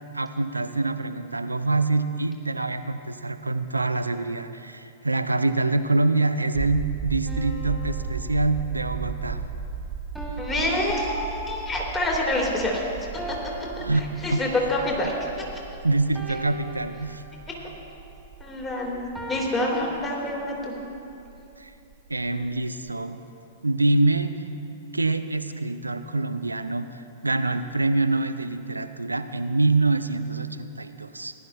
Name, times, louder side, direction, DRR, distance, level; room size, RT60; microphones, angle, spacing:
voice 1, 0.1-9.4 13.8-14.4 15.8-17.2 21.6-21.7 22.1-23.2 23.6-24.3 24.9-31.3, right 2 dB, 85° right, 11 dB, 0.5 m, -25 dB
sound 1, 6.5-22.6 22.9-23.0, right 6 dB, 35° right, 0.5 m, -36 dB
sound 2, 7.3-9.0 10.1-11.8 13.1-14.8 16.1-17.6 19.1-19.9, right 1 dB, ahead, 2.7 m, -40 dB
voice 2, 10.4-12.9 13.3-13.4 14.2-15.1 18.4-19.0 19.3-20.7, left 1 dB, 20° left, -1 dB, 3.0 m, -26 dB
18.5 x 12.0 x 3.3 m, 2.7 s
figure-of-eight pair, 105°, 0 cm